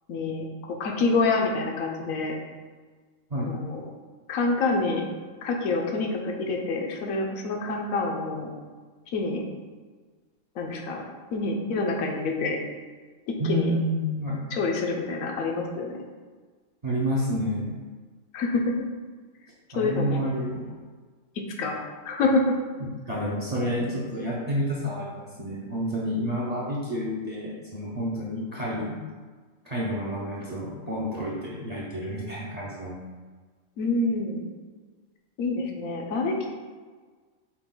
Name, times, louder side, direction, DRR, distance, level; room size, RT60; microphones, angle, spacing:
voice 1, 0.1-2.3 3.4-3.8 4.3-5.0 5.4-8.5 9.1-9.4 10.6-11.0 11.3-12.6 13.3-13.7 14.5-15.9 18.3-18.7 19.7-20.2 21.6-21.7 22.0-22.5 33.8-34.4 35.4-36.5, left 3 dB, 85° left, 1 dB, 1.1 m, -27 dB
voice 2, 13.4-14.5 16.8-17.7 19.7-20.7 23.0-29.0 29.6-33.0, equal, 40° right, -6 dB, 0.7 m, -29 dB
5.8 x 2.3 x 3.7 m, 1.5 s
omnidirectional pair, 1.4 m